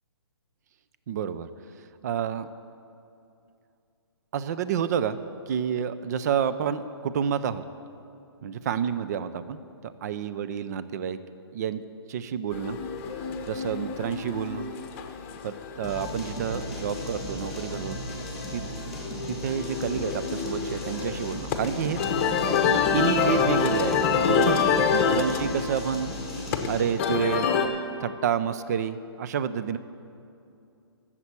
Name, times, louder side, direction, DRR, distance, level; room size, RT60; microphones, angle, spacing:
voice 1, 1.1-1.5 2.0-2.5 4.3-5.2 5.5-7.6 8.4-11.2 11.5-11.8 12.1-12.8 13.5-14.7 15.4-18.0 18.5-18.6 19.3-22.0 22.9-24.0 24.2-24.6 24.9-26.1 26.7-27.5 28.0-29.8, right 8 dB, 40° right, 13 dB, 0.5 m, -29 dB
sound 1, 12.5-27.7, left 6 dB, 30° left, 0.9 m, -27 dB
sound 2, 15.8-27.0, equal, ahead, 2.1 m, -37 dB
12.5 x 7.4 x 8.2 m, 2.6 s
hypercardioid pair, 155°, 14 cm